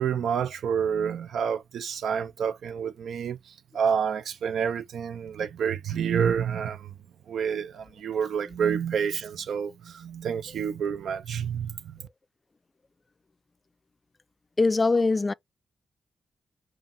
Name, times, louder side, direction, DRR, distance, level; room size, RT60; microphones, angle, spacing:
voice 1, 0.0-3.4 3.7-6.9 7.3-11.9, right 7 dB, 80° right, 0.5 m, -28 dB
voice 2, 14.6-15.3, left 3 dB, 35° left, 0.4 m, -22 dB
5.3 x 2.0 x 4.3 m
supercardioid pair, 45°, 0 cm